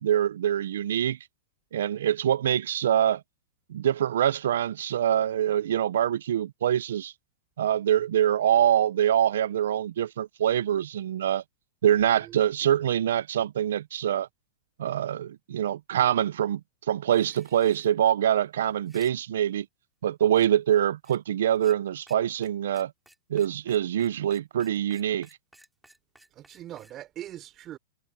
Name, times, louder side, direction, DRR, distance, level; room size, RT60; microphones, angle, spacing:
voice 1, 0.0-1.2 1.7-3.2 3.7-7.1 7.6-11.4 11.8-14.3 14.8-16.6 16.9-19.7 20.0-22.9 23.3-25.3, right 10 dB, 80° right, 0.6 m, -24 dB
voice 2, 12.1-12.7 26.3-27.8, right 12 dB, 35° right, 3.4 m, -42 dB
sound 1, 17.1-17.9 18.7-19.1 20.3-20.5 21.0-21.2 21.5-21.8 22.1-22.2 22.4-22.5 22.7-26.9, right 1 dB, 5° right, 4.7 m, -56 dB
hypercardioid pair, 125°, 0 cm